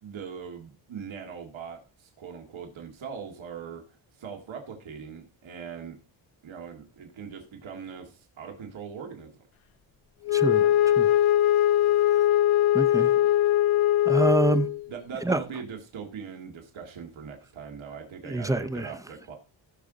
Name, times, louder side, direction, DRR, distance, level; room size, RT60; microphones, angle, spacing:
voice 1, 0.0-6.0 6.4-9.3 14.1-14.3 14.9-19.3, right 6 dB, 80° right, 2.0 m, -40 dB
Wind instrument woodwind instrument, 10.2-14.9, left 12 dB, 85° left, 0.9 m, -21 dB
voice 2, 10.3-11.2 12.7-13.1 14.1-14.7 15.2-15.4 18.2-18.9, right 2 dB, 10° right, 0.5 m, -26 dB
15.5 x 6.2 x 3.9 m
wide cardioid pair, 120°, 47 cm